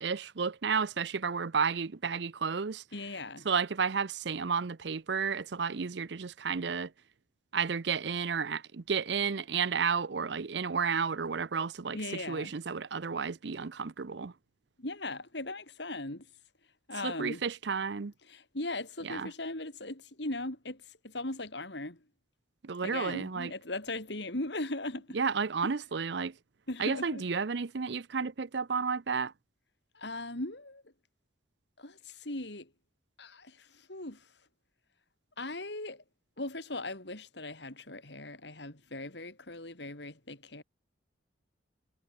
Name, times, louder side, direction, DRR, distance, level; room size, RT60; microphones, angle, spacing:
voice 1, 0.0-2.8 3.4-6.9 7.5-14.3 17.0-18.1 19.0-19.3 22.6-23.5 25.1-26.3 26.8-29.3, right 5 dB, 65° right, 0.6 m, -32 dB
voice 2, 2.9-3.5 11.9-12.5 14.8-16.3 16.9-17.4 18.3-22.0 22.8-25.2 25.6-25.7 26.7-27.3 29.9-30.8 31.8-32.7 33.2-34.2 35.4-36.0 36.4-40.6, left 2 dB, 60° left, 3.8 m, -39 dB
head